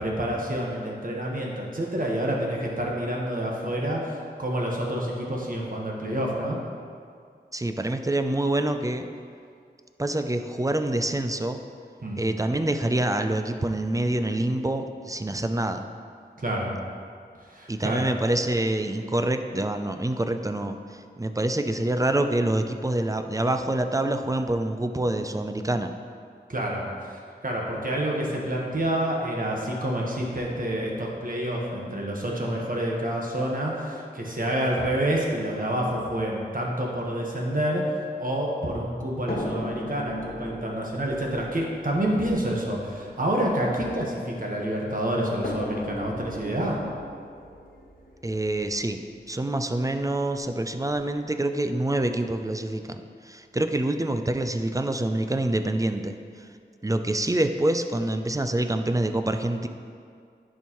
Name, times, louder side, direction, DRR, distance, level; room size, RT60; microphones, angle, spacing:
voice 1, 0.0-6.6 12.0-12.2 16.4-16.7 17.5-18.1 26.5-37.9 38.2-46.8, right 1 dB, 50° right, -2 dB, 1.2 m, -28 dB
voice 2, 7.5-9.1 10.0-11.6 12.2-15.9 17.7-25.9 48.2-49.0 49.3-56.5 56.8-59.7, right 1 dB, 20° right, 7 dB, 0.4 m, -26 dB
sound 1, 39.3-44.5 45.4-49.4 50.4-50.5 50.9-51.0, left 1 dB, 55° left, 0.9 m, -38 dB
10.5 x 4.5 x 3.0 m, 2.2 s
wide cardioid pair, 55°, 18 cm